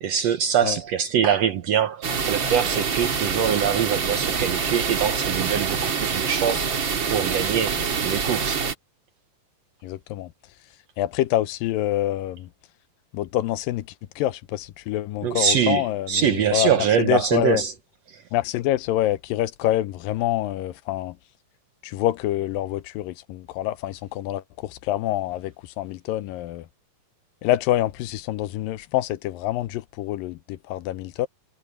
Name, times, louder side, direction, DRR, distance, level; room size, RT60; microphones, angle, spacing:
voice 1, 0.0-6.7 7.1-8.6 15.2-17.7, right 8 dB, 70° right, 1.7 m, -23 dB
sound 1, 2.0-8.7, right 6 dB, 40° right, 2.4 m, -25 dB
voice 2, 9.8-10.3 11.0-12.5 13.1-13.9 14.2-17.6 18.3-21.2 21.8-26.7 27.4-31.3, left 14 dB, 90° left, 2.5 m, -26 dB
omnidirectional pair, 3.9 m